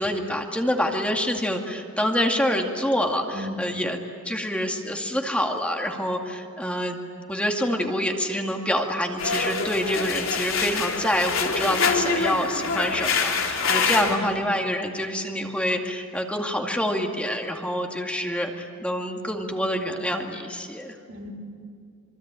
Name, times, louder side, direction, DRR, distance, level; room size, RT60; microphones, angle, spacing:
voice 1, 0.0-4.0 4.2-7.0 7.3-21.0, equal, 5° left, 2 dB, 2.2 m, -26 dB
voice 2, 3.3-3.9 13.9-14.4 21.1-21.3, left 1 dB, 85° right, 0 dB, 4.8 m, -35 dB
sound 1, 9.2-14.2, left 4 dB, 85° left, 3.3 m, -25 dB
27.0 x 24.0 x 9.1 m, 2.3 s
head